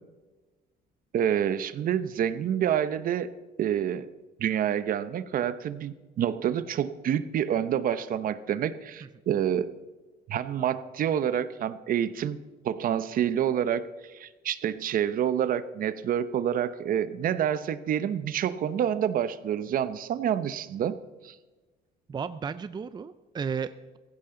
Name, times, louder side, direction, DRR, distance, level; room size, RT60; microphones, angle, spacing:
voice 1, 1.1-3.3 3.6-4.1 4.4-9.7 10.3-12.4 12.6-21.0 21.2-21.4, right 9 dB, 55° right, 14 dB, 0.8 m, -28 dB
voice 2, 22.1-24.0, right 6 dB, 25° right, 13 dB, 0.5 m, -34 dB
16.0 x 15.5 x 3.9 m, 1.2 s
cardioid pair, 110°, 17 cm